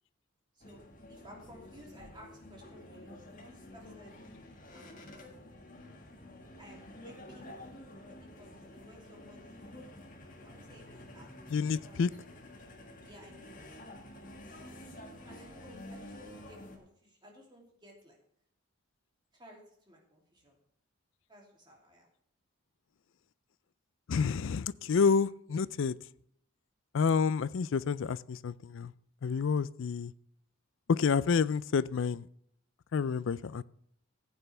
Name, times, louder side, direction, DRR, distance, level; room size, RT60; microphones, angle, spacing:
sound 1, 0.6-16.8, left 1 dB, 35° left, 1.7 m, -50 dB
voice 1, 1.1-4.2 4.7-5.0 6.6-7.4 8.1-9.6 10.4-11.3 11.8-12.0 13.0-13.8 15.2-18.2 19.3-19.6 19.9-20.6 21.3-22.1, equal, 20° right, -1 dB, 2.8 m, -56 dB
voice 2, 11.5-12.1 24.1-25.9 26.9-28.9 29.2-30.1 30.9-32.3 32.9-33.6, left 5 dB, 60° left, 19 dB, 0.4 m, -29 dB
15.0 x 8.9 x 3.4 m, 0.69 s
head